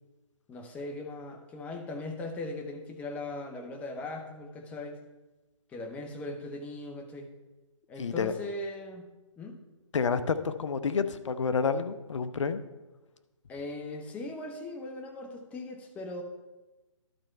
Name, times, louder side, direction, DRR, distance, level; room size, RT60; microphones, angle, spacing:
voice 1, 0.5-5.0 5.7-7.3 7.9-9.6 13.5-16.2, left 2 dB, 10° left, 5 dB, 0.5 m, -39 dB
voice 2, 8.0-8.3 9.9-12.6, left 5 dB, 65° left, 11 dB, 0.7 m, -29 dB
11.5 x 4.4 x 5.5 m, 1.1 s
hypercardioid pair, 145°, 17 cm